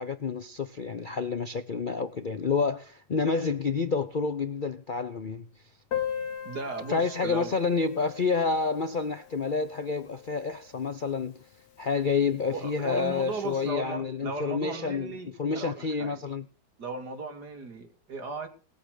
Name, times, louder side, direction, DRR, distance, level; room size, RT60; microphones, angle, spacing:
voice 1, 0.0-5.4 6.9-11.3 11.8-15.1 15.4-16.4, left 4 dB, 80° left, 0.4 m, -29 dB
Piano, 5.9-11.3 11.5-11.6 11.8-12.0 12.3-12.4 13.2-13.3, left 9 dB, 55° left, 1.9 m, -39 dB
voice 2, 6.4-7.5 12.5-16.2 16.8-18.5, right 3 dB, 55° right, 3.1 m, -36 dB
19.0 x 8.6 x 6.5 m
omnidirectional pair, 2.1 m